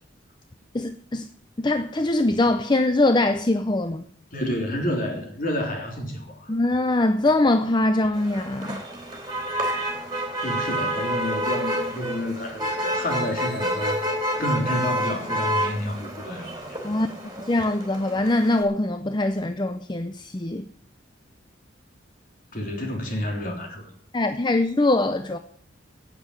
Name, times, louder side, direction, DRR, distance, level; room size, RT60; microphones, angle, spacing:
voice 1, 0.7-1.3 1.6-4.0 6.5-8.8 16.8-17.1 17.4-20.7 24.1-25.4, left 2 dB, 25° left, 0.5 m, -22 dB
voice 2, 4.3-6.5 10.4-14.0 14.4-16.8 22.5-23.9, left 1 dB, 45° left, 3.4 m, -29 dB
Motor vehicle (road), 8.1-18.6, equal, 20° right, 3.1 m, -29 dB
10.0 x 8.3 x 9.7 m
head